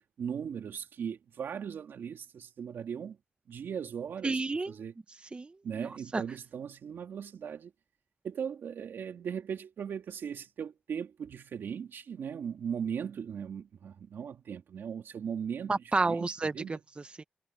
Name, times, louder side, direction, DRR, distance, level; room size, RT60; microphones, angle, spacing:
voice 1, 0.0-3.2 3.5-4.4 4.7-4.9 5.6-7.7 8.2-15.7 16.0-16.3 16.5-16.8, right 7 dB, 75° right, 2.8 m, -38 dB
voice 2, 4.2-4.7 5.1-5.5 5.8-6.2 15.7-17.2, right 3 dB, 30° right, 1.0 m, -31 dB
cardioid pair, 70°, 4 cm